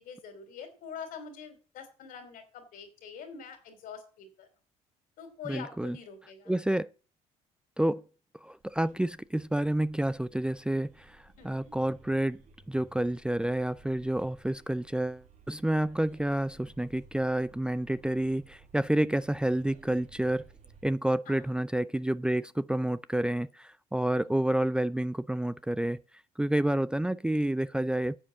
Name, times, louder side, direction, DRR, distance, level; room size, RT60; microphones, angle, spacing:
voice 1, 0.0-4.5 5.2-6.9 11.4-11.7 21.3-21.4 24.2-24.4, left 6 dB, 75° left, 3.1 m, -45 dB
voice 2, 5.5-6.0 6.5-6.9 7.8-8.0 8.4-12.4 12.7-20.4 20.8-26.0 26.4-28.2, right 1 dB, 5° right, 0.5 m, -29 dB
sound 1, 8.6-20.9, right 3 dB, 55° right, 2.2 m, -57 dB
10.0 x 7.3 x 7.5 m
supercardioid pair, 75°, 15 cm